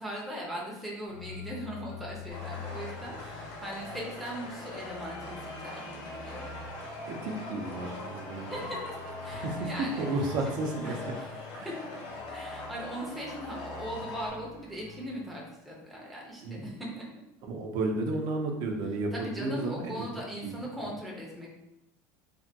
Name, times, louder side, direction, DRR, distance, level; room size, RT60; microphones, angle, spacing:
voice 1, 0.0-6.6 8.5-9.0 9.2-10.1 10.8-11.3 11.6-11.7 12.3-17.0 19.1-21.5, equal, ahead, -4 dB, 0.5 m, -39 dB
sound 1, 1.1-15.6, left 4 dB, 70° left, 0.9 m, -47 dB
sound 2, 2.3-14.3, left 2 dB, 45° left, 0.7 m, -42 dB
voice 2, 7.1-8.6 9.4-11.1 11.5-11.7 16.4-16.7 17.4-19.9 20.4-20.5, right 2 dB, 50° right, 2 dB, 0.5 m, -32 dB
3.3 x 2.2 x 2.6 m, 0.90 s
cardioid pair, 165°, 9 cm